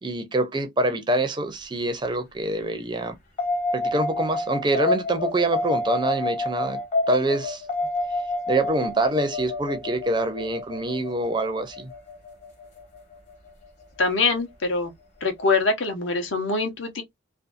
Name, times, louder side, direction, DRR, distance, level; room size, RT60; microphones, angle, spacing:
voice 1, 0.0-3.2 3.7-6.8 7.1-7.6 8.5-11.9, right 2 dB, 25° right, 0.4 m, -25 dB
sound 1, 3.4-14.2, left 2 dB, 35° left, 1.0 m, -29 dB
voice 2, 14.0-14.9 15.2-17.0, left 3 dB, 70° left, 0.8 m, -24 dB
2.6 x 2.2 x 2.4 m
head